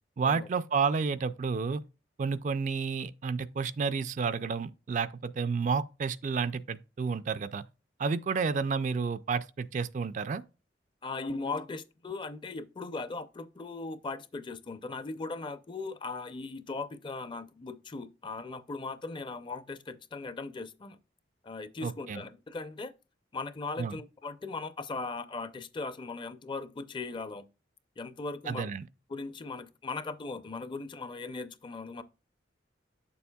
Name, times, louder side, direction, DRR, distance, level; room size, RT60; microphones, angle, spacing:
voice 1, 0.2-1.8 2.2-7.6 8.0-10.4 21.8-22.2 23.8-24.0 28.5-28.8, right 5 dB, 40° right, 0.3 m, -30 dB
voice 2, 11.0-21.0 21.4-22.9 23.3-27.5 28.0-28.7 29.1-32.0, left 3 dB, 25° left, 0.5 m, -38 dB
8.4 x 7.0 x 2.3 m
head